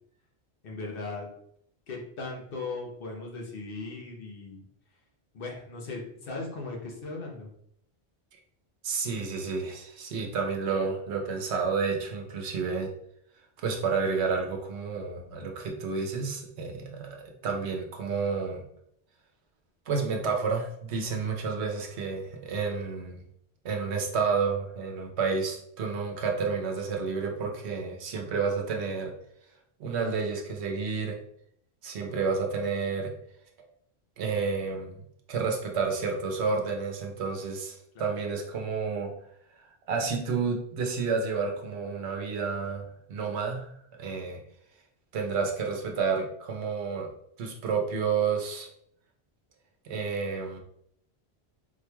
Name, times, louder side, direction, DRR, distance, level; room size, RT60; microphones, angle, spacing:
voice 1, 0.6-1.3 1.9-4.6 5.3-7.5 37.9-38.2, left 3 dB, 60° left, 0 dB, 1.0 m, -38 dB
voice 2, 8.8-12.9 13.6-17.2 17.4-18.6 19.9-23.2 23.6-29.1 29.8-31.2 31.8-33.1 34.2-34.9 35.3-39.1 39.9-43.7 44.0-44.4 45.1-47.1 47.4-48.7 49.8-50.6, right 5 dB, 85° right, 2 dB, 1.0 m, -30 dB
4.1 x 3.0 x 2.2 m, 0.70 s
omnidirectional pair, 1.1 m